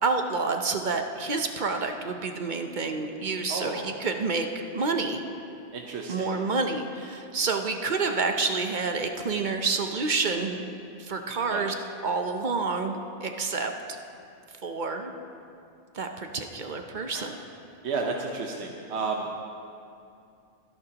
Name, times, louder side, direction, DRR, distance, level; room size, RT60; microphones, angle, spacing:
voice 1, 0.0-5.2 6.1-10.6 11.0-11.7 12.0-13.7 14.6-15.1 15.9-17.4, right 4 dB, 45° right, 5 dB, 0.8 m, -28 dB
voice 2, 3.5-3.9 5.7-6.3 11.5-11.7 17.1-17.3 17.8-19.3, right 4 dB, 65° right, 0 dB, 1.2 m, -32 dB
24.5 x 11.5 x 2.9 m, 2.5 s
omnidirectional pair, 1.2 m